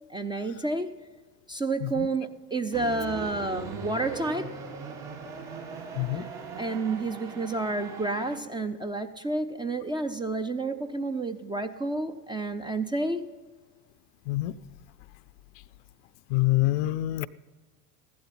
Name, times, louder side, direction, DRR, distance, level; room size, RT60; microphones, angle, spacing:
voice 1, 0.1-0.9 1.5-4.6 6.2-6.3 6.6-13.3, right 2 dB, 10° right, 0.4 m, -30 dB
sound 1, 2.7-8.4, right 5 dB, 55° right, 2.8 m, -39 dB
voice 2, 6.0-6.3 14.3-14.6 16.3-17.3, left 17 dB, 50° left, 0.5 m, -26 dB
15.0 x 11.5 x 4.1 m
figure-of-eight pair, 70°, 46 cm